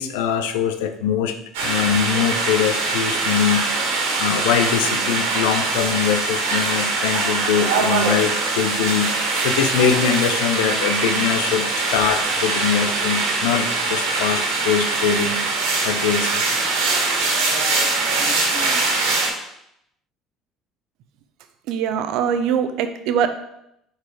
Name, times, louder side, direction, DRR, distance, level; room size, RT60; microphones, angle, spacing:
voice 1, 0.0-3.7 4.2-9.1 9.4-15.4 15.8-16.4, left 8 dB, 85° left, 8 dB, 0.6 m, -22 dB
sound 1, 1.5-19.3, right 3 dB, 85° right, 1.6 m, -22 dB
voice 2, 21.7-23.3, right 8 dB, 70° right, 9 dB, 0.6 m, -22 dB
4.6 x 4.5 x 4.8 m, 0.78 s
supercardioid pair, 80°, 0 cm